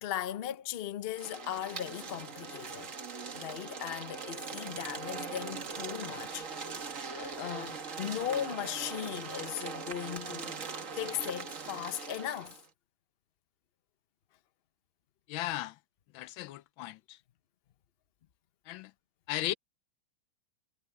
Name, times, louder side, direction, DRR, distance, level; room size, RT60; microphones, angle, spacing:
voice 1, 0.0-2.9 3.3-6.8 7.1-10.6 10.9-12.6, left 11 dB, 65° left, 0.6 m, -38 dB
sound 1, 1.1-12.6, right 5 dB, 45° right, 1.7 m, -41 dB
voice 2, 15.3-15.8 16.1-17.2 18.7-18.9 19.3-19.5, left 15 dB, 85° left, 1.4 m, -36 dB
omnidirectional pair, 2.1 m